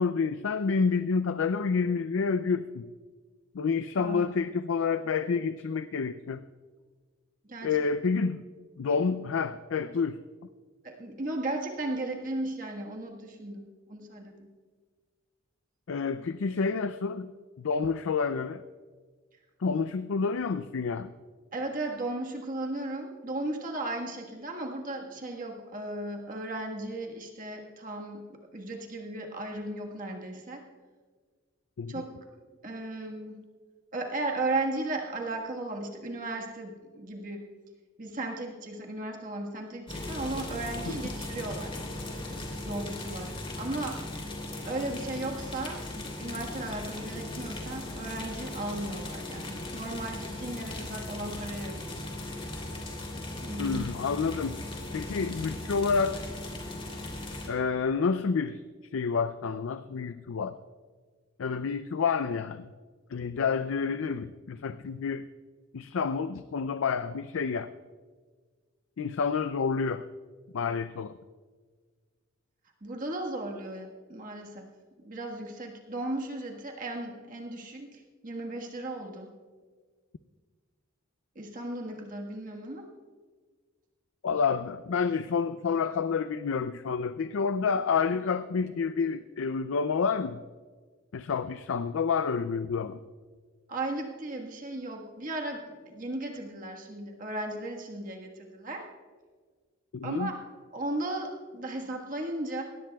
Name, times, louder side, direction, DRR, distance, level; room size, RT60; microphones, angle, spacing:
voice 1, 0.0-2.8 3.5-6.4 7.6-8.4 8.8-10.2 15.9-17.3 17.6-18.6 19.6-21.1 31.8-31.9 53.6-54.6 54.9-56.2 57.5-58.6 58.9-60.5 61.4-62.7 63.1-65.2 65.7-67.7 69.0-70.0 70.5-71.1 84.2-90.4 91.1-93.0 99.9-100.3, left 5 dB, 85° left, 11 dB, 0.4 m, -29 dB
voice 2, 7.4-7.8 10.8-14.5 21.5-30.7 31.9-32.2 32.6-33.4 33.9-37.4 38.0-41.8 42.6-44.0 44.6-52.1 53.4-53.8 72.8-74.7 75.0-79.3 81.3-82.9 93.7-98.9 100.0-100.4 100.7-102.6, right 2 dB, 40° right, 1 dB, 1.5 m, -36 dB
sound 1, 39.9-57.5, left 1 dB, 30° left, 3.0 m, -38 dB
20.5 x 18.0 x 2.3 m, 1.5 s
head